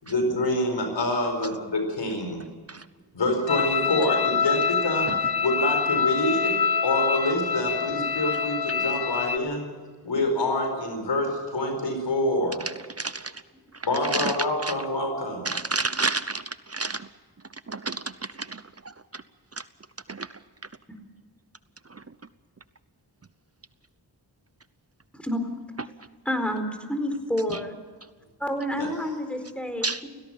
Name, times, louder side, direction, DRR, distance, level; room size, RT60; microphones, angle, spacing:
voice 1, 0.0-2.4 3.1-6.6 6.8-9.7 10.0-12.6 13.8-15.5 28.7-28.9, left 1 dB, 90° left, 4 dB, 4.7 m, -26 dB
voice 2, 2.4-2.9 5.1-5.2 12.6-13.4 13.7-14.4 14.6-14.7 15.4-17.1 17.5-19.2 19.5-19.6 20.1-20.4 21.8-22.1 25.8-26.1 27.5-27.6 29.8-30.1, right 3 dB, 35° right, 14 dB, 0.8 m, -32 dB
sound 1, 3.5-9.4, left 6 dB, 60° left, 1.1 m, -26 dB
voice 3, 26.3-27.7 28.4-30.1, equal, 5° left, 7 dB, 4.3 m, -29 dB
17.5 x 17.0 x 9.0 m, 1.5 s
cardioid pair, 40°, 42 cm